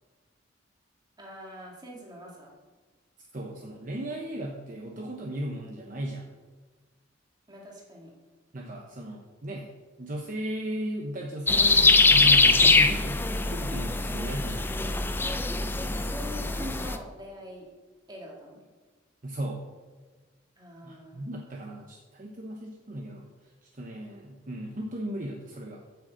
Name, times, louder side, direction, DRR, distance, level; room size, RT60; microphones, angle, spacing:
voice 1, 1.2-2.5 7.5-8.1 15.9-17.7 18.1-18.6 20.6-21.2, equal, 20° right, -2 dB, 2.2 m, -43 dB
voice 2, 3.3-6.3 8.5-9.7 10.0-14.7 19.2-19.6 20.8-23.3 23.6-25.8, right 1 dB, 40° right, 0 dB, 1.0 m, -36 dB
sound 1, 11.5-17.0, left 3 dB, 10° left, 0.4 m, -22 dB
8.3 x 6.3 x 7.5 m, 1.3 s
head